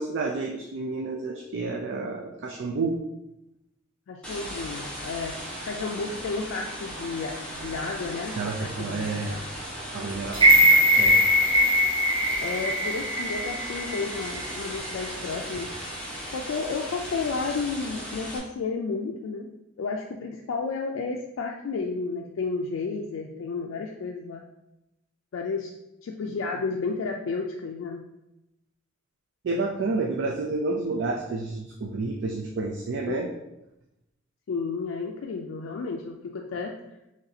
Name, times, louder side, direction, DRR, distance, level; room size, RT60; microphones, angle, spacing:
voice 1, 0.0-3.0 8.4-9.4 9.9-11.4 29.4-33.3, right 3 dB, 60° right, 1 dB, 0.4 m, -30 dB
voice 2, 4.1-5.4 5.6-9.4 10.4-10.8 12.4-15.7 16.3-19.5 19.8-24.4 25.3-25.7 26.0-28.1 33.1-33.3 34.5-36.7, left 4 dB, 75° left, 1 dB, 0.3 m, -32 dB
sound 1, 4.2-18.4, equal, 5° left, 1.0 m, -37 dB
sound 2, 10.3-14.5 14.9-15.0, equal, 25° right, 1.2 m, -21 dB
4.0 x 3.2 x 2.7 m, 0.90 s
head